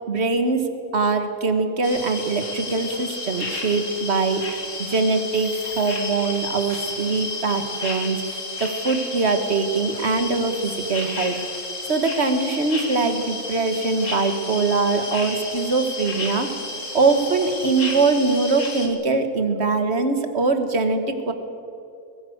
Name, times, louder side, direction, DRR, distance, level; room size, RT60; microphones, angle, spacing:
voice 1, 0.1-0.6 0.9-8.2 8.6-11.4 11.9-16.5 16.9-21.3, right 3 dB, 45° right, 8 dB, 1.8 m, -22 dB
sound 1, 1.8-18.9, left 3 dB, 55° left, 2.7 m, -32 dB
22.0 x 15.0 x 7.9 m, 2.6 s
omnidirectional pair, 1.6 m